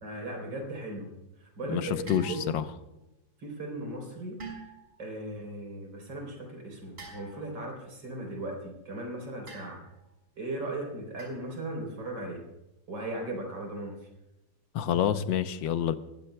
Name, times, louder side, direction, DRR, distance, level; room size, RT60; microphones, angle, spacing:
voice 1, 0.0-2.6 3.4-4.4 5.0-9.8 10.4-12.4 12.9-13.9, right 1 dB, 90° right, 1 dB, 4.5 m, -37 dB
voice 2, 1.7-2.6 14.7-16.0, left 9 dB, 85° left, 11 dB, 1.5 m, -28 dB
sound 1, 2.1-2.8 4.4-5.0 7.0-7.7 9.5-10.1 11.2-11.5, right 3 dB, 30° right, 5.3 m, -45 dB
21.5 x 15.0 x 2.3 m, 0.94 s
omnidirectional pair, 2.0 m